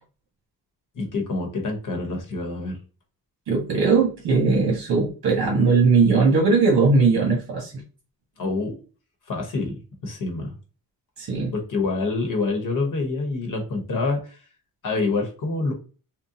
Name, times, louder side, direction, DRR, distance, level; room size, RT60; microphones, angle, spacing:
voice 1, 0.9-2.8 8.4-8.7 9.3-10.5 11.5-14.4 14.8-15.7, left 3 dB, 55° left, 2 dB, 1.0 m, -26 dB
voice 2, 3.5-7.7 11.2-11.5, right 4 dB, 65° right, 0 dB, 1.1 m, -19 dB
3.7 x 2.2 x 2.6 m, 0.37 s
wide cardioid pair, 170°, 37 cm